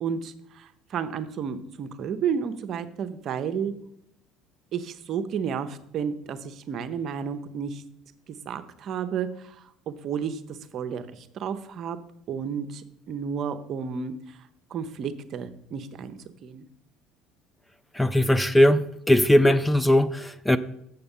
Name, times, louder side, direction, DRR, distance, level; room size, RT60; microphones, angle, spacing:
voice 1, 0.0-3.7 4.7-7.8 8.3-12.0 12.3-14.4 14.7-16.1 16.4-16.6, right 7 dB, 55° right, 0.7 m, -32 dB
voice 2, 17.9-20.6, left 1 dB, 10° left, 0.4 m, -19 dB
7.2 x 6.7 x 5.5 m
hypercardioid pair, 75°, 0 cm